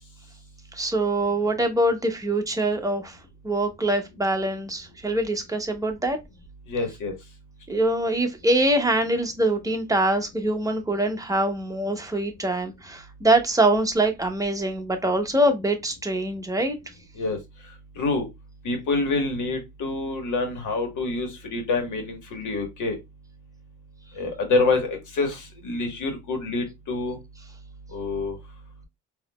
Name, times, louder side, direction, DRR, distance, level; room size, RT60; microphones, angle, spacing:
voice 1, 0.7-3.2 3.4-6.2 7.7-16.8, right 1 dB, 10° right, 0.9 m, -24 dB
voice 2, 6.7-7.1 17.2-17.4 18.0-18.3 18.6-23.0 24.2-25.4 25.6-27.2 27.9-28.3, left 3 dB, 80° left, 1.6 m, -26 dB
4.1 x 2.9 x 2.4 m
cardioid pair, 90°, 30 cm